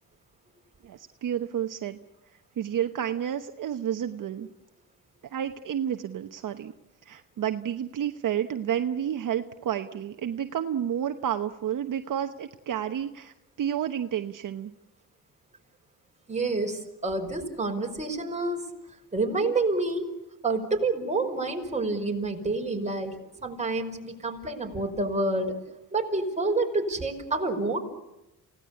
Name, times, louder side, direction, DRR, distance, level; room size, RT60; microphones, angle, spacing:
voice 1, 0.8-2.0 2.6-4.5 5.3-6.7 7.1-14.7, right 9 dB, 60° right, 7 dB, 1.1 m, -30 dB
voice 2, 16.3-18.6 19.1-20.1 20.4-23.2 23.4-25.6 25.9-27.8, right 2 dB, 20° right, 2 dB, 5.3 m, -28 dB
28.5 x 18.0 x 8.5 m, 0.94 s
cardioid pair, 95°, 37 cm